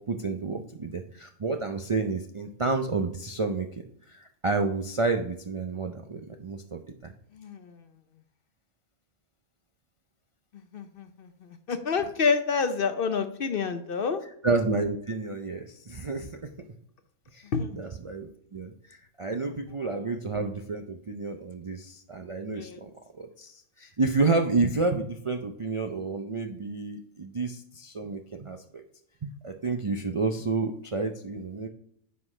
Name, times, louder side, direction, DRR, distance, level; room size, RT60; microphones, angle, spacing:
voice 1, 0.0-7.1 14.4-16.6 17.3-22.9 23.2-28.8 29.2-31.7, right 3 dB, 45° right, 4 dB, 0.4 m, -30 dB
voice 2, 7.3-7.8 10.7-11.3 11.7-14.2 17.5-17.7 22.6-22.8, left 5 dB, 55° left, 9 dB, 0.8 m, -28 dB
9.5 x 5.8 x 3.2 m, 0.67 s
omnidirectional pair, 1.3 m